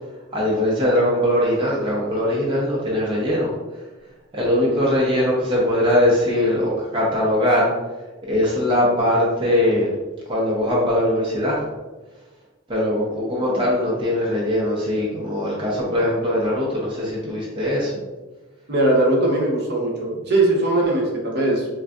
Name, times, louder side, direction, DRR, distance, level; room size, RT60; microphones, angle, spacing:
voice 1, 0.3-3.5 4.3-7.7 8.3-9.9 10.3-11.6 12.7-17.9, left 1 dB, 25° right, -5 dB, 0.5 m, -21 dB
voice 2, 18.7-21.7, right 2 dB, 55° right, -2 dB, 0.7 m, -20 dB
3.7 x 2.5 x 2.3 m, 1.2 s
head